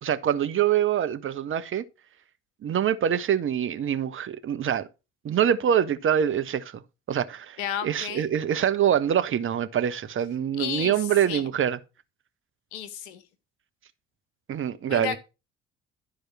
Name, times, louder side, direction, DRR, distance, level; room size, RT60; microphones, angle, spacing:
voice 1, 0.0-1.8 2.6-4.9 5.2-6.8 7.1-11.8 14.5-15.2, right 9 dB, 35° right, 1.1 m, -25 dB
voice 2, 7.6-8.3 10.6-10.9 11.2-11.4 12.7-13.2 14.9-15.2, left 10 dB, 65° left, 1.3 m, -32 dB
12.5 x 4.9 x 6.1 m
figure-of-eight pair, 50°, 35 cm